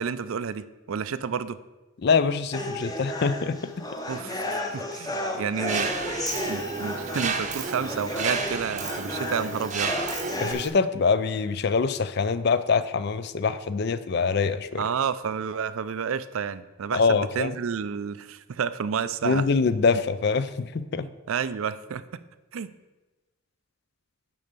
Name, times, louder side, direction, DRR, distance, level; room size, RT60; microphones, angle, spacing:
voice 1, 0.0-1.6 4.1-5.9 6.5-10.0 14.8-19.5 21.3-22.0 22.5-22.7, right 6 dB, 70° right, 14 dB, 0.4 m, -30 dB
voice 2, 2.0-3.6 10.4-14.8 16.9-17.5 19.2-21.1, left 5 dB, 50° left, 14 dB, 0.4 m, -24 dB
sound 1, 2.5-10.5, left 1 dB, 15° left, 0.8 m, -33 dB
Mechanisms, 5.7-10.7, right 4 dB, 35° right, 0.7 m, -32 dB
6.9 x 5.5 x 6.7 m, 1.1 s
head